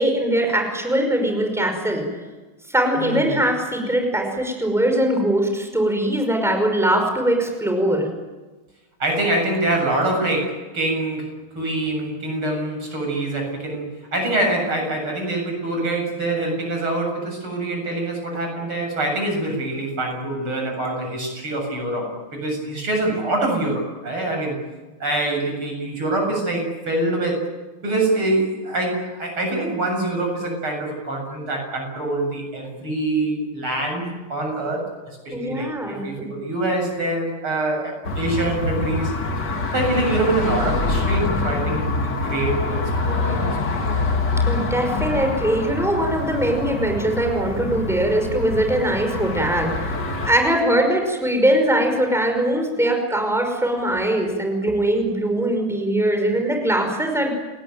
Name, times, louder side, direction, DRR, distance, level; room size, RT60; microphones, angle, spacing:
voice 1, 0.0-2.0 2.7-8.1 35.3-36.3 44.5-49.9 50.2-57.3, right 1 dB, ahead, 3 dB, 5.4 m, -21 dB
voice 2, 3.0-3.3 9.0-24.6 25.0-27.5 27.8-39.1 39.7-44.1, right 2 dB, 80° right, 2 dB, 8.5 m, -25 dB
sound 1, 38.0-50.3, left 3 dB, 55° left, 2.7 m, -25 dB
30.0 x 19.0 x 9.2 m, 1.2 s
omnidirectional pair, 2.3 m